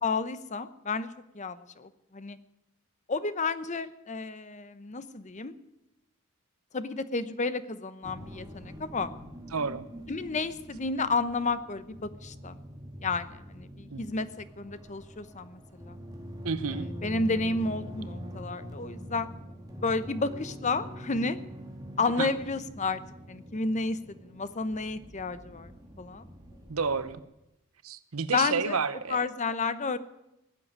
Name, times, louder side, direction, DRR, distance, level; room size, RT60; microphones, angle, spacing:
voice 1, 0.0-1.1 1.3-2.4 3.1-5.5 6.7-9.1 10.1-12.6 13.0-16.0 17.0-19.3 19.8-21.4 22.0-23.0 23.3-25.7 26.0-26.2 28.3-28.8 29.1-30.0, left 3 dB, 35° left, 13 dB, 0.8 m, -31 dB
sound 1, 8.0-27.2, equal, 15° right, 2.2 m, -44 dB
voice 2, 9.5-9.8 13.9-14.1 16.4-16.9 22.2-22.3 26.7-27.2 27.8-29.3, right 5 dB, 80° right, 14 dB, 0.9 m, -30 dB
18.5 x 7.7 x 9.6 m, 0.89 s
head